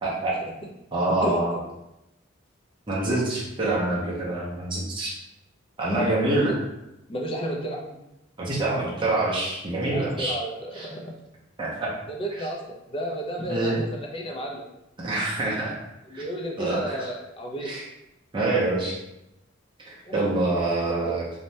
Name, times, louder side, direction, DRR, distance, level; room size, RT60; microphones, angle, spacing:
voice 1, 0.0-0.4 0.9-1.6 2.9-5.1 5.8-6.6 8.4-10.4 10.7-10.9 11.6-11.9 13.5-13.8 15.0-15.8 16.1-16.2 16.6-17.1 17.6-17.8 18.3-19.0 19.9-21.2, right 2 dB, 25° right, -6 dB, 0.5 m, -26 dB
voice 2, 1.2-1.6 6.3-6.5 7.1-7.8 9.9-11.1 12.1-12.6 12.9-14.6 16.1-17.7 20.0-20.3 20.9-21.2, right 1 dB, 25° left, -1 dB, 0.5 m, -32 dB
2.7 x 2.1 x 3.1 m, 0.89 s
head